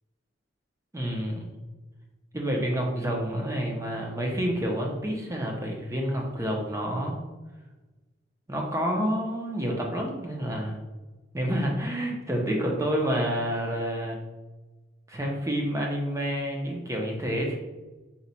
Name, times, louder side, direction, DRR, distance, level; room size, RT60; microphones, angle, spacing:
voice 1, 0.9-1.5 2.3-7.2 8.5-10.8 11.3-14.2 15.1-17.6, equal, 15° right, 0 dB, 0.6 m, -29 dB
4.2 x 2.3 x 4.0 m, 1.2 s
head